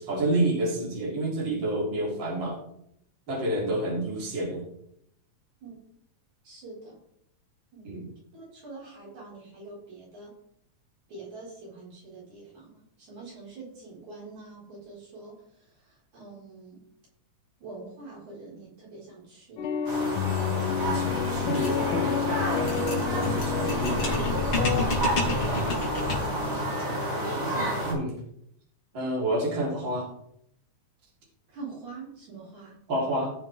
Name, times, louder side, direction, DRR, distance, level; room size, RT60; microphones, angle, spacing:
voice 1, 0.0-2.6 3.3-4.6 7.8-8.1 20.8-22.7 23.1-24.1 27.9-28.1 28.9-30.1 32.9-33.3, right 1 dB, 40° right, -4 dB, 3.9 m, -29 dB
voice 2, 6.4-7.0 7.7-8.0 8.3-10.4 11.1-16.8 17.6-19.7 26.2-27.9 31.5-32.8, right 3 dB, 75° right, -6 dB, 6.4 m, -45 dB
sound 1, 19.6-24.9, left 8 dB, 80° left, 1.2 m, -29 dB
sound 2, 19.9-27.9, right 1 dB, 60° right, 6.3 m, -30 dB
sound 3, 20.8-26.4, left 2 dB, 55° left, 3.4 m, -31 dB
17.5 x 6.8 x 3.6 m, 0.73 s
omnidirectional pair, 3.3 m